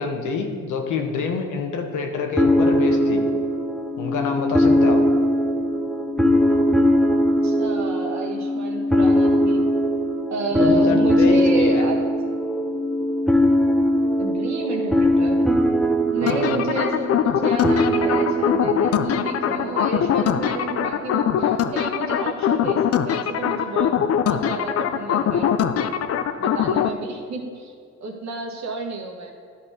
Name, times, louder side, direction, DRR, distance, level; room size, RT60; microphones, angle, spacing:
voice 1, 0.0-3.2 4.0-5.0 10.5-11.8 16.2-16.6, left 4 dB, 80° left, 4 dB, 1.2 m, -27 dB
sound 1, 2.4-19.8, equal, ahead, 0.7 m, -20 dB
voice 2, 7.4-9.6 10.3-12.0 14.2-15.4 16.1-25.5 26.4-27.7 28.0-29.3, right 3 dB, 65° right, 1 dB, 1.5 m, -30 dB
sound 2, 16.3-26.9, left 9 dB, 55° left, 0.5 m, -22 dB
11.5 x 4.3 x 5.0 m, 2.2 s
cardioid pair, 90°, 30 cm